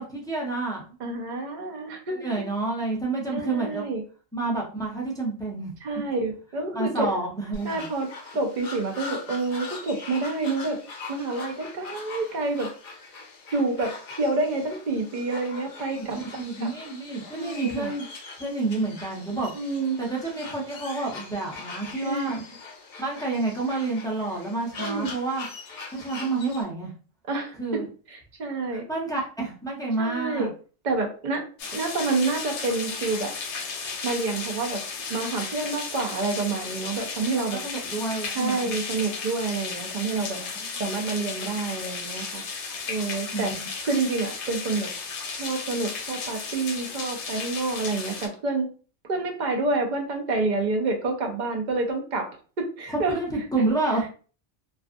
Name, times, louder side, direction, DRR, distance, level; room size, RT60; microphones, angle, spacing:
voice 1, 0.0-0.9 2.2-3.9 4.3-5.7 6.7-7.9 16.0-18.0 18.4-19.5 20.0-22.4 23.0-25.5 25.9-26.9 27.6-27.9 28.7-30.5 37.5-38.7 40.3-40.9 43.3-43.7 52.9-54.0, right 3 dB, 5° left, -4 dB, 0.4 m, -29 dB
voice 2, 1.0-2.3 3.3-4.0 5.8-7.1 7.6-8.1 8.3-10.8 11.1-12.7 13.5-16.2 16.6-16.7 17.4-17.9 19.5-20.0 22.0-22.3 24.8-25.1 27.3-27.5 28.1-28.8 30.0-30.5 30.8-31.4 31.7-33.3 34.0-34.8 35.1-37.6 38.3-40.4 40.8-42.4 42.9-43.5 43.8-44.9 45.4-48.7 49.1-52.3 52.6-53.2, right 3 dB, 50° right, 3 dB, 0.6 m, -28 dB
sound 1, 7.5-26.6, left 3 dB, 55° left, 0.7 m, -42 dB
sound 2, 31.6-48.3, left 5 dB, 85° left, 0.9 m, -34 dB
2.4 x 2.4 x 2.5 m, 0.38 s
omnidirectional pair, 1.2 m